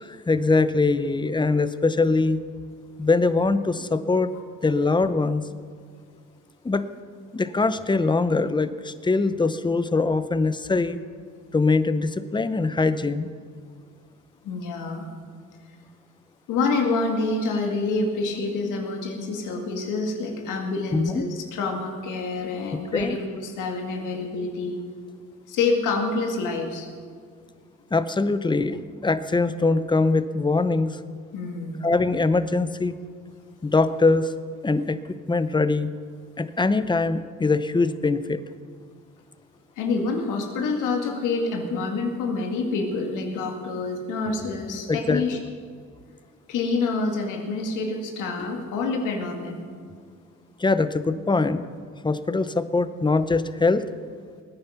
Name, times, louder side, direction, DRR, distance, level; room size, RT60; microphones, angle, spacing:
voice 1, 0.0-2.4 3.0-4.3 4.6-5.4 6.6-6.9 7.3-11.0 11.5-13.3 20.9-21.2 22.9-23.2 27.9-31.0 31.8-33.0 33.6-34.3 34.6-35.0 35.3-35.9 36.4-38.4 44.9-45.2 50.6-51.6 52.0-53.8, left 3 dB, 15° left, 13 dB, 0.7 m, -22 dB
voice 2, 14.4-15.1 16.5-24.8 25.5-26.9 31.3-31.8 39.8-45.4 46.5-49.6, left 3 dB, 90° left, 3 dB, 2.2 m, -27 dB
20.0 x 9.6 x 5.7 m, 2.1 s
cardioid pair, 90°, 30 cm